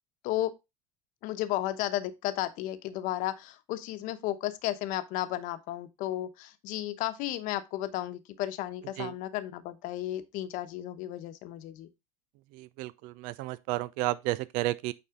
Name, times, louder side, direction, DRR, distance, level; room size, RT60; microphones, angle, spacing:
voice 1, 1.2-11.9, left 14 dB, 55° left, 1.0 m, -33 dB
voice 2, 12.5-14.9, right 18 dB, 60° right, 0.5 m, -32 dB
8.8 x 4.2 x 3.7 m
supercardioid pair, 125°, 16 cm